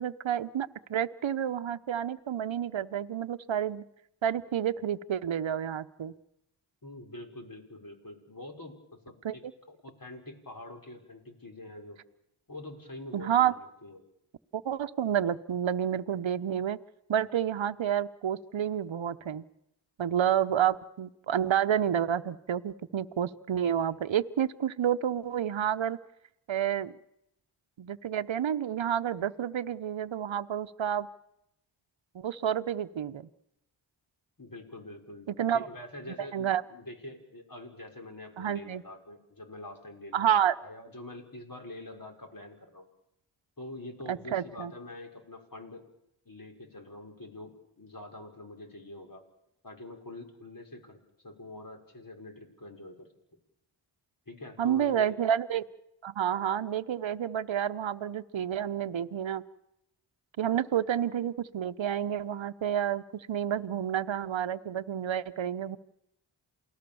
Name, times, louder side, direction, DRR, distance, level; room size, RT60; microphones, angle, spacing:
voice 1, 0.0-3.8 4.2-6.1 9.2-9.4 13.1-13.5 14.5-16.8 17.1-19.4 20.0-26.0 26.5-26.9 27.8-31.1 32.1-33.3 35.3-35.7 36.3-36.6 38.4-38.8 40.1-40.5 44.1-44.7 54.6-55.6 56.0-59.4 60.4-65.8, right 9 dB, 65° right, 10 dB, 1.0 m, -29 dB
voice 2, 6.8-12.0 12.5-14.0 34.4-35.3 35.5-42.9 43.6-45.8 46.3-49.2 49.6-51.0 51.2-53.1 54.3-55.2, left 1 dB, 40° left, 3 dB, 5.7 m, -45 dB
28.5 x 18.5 x 7.1 m, 0.81 s
cardioid pair, 40°, 50 cm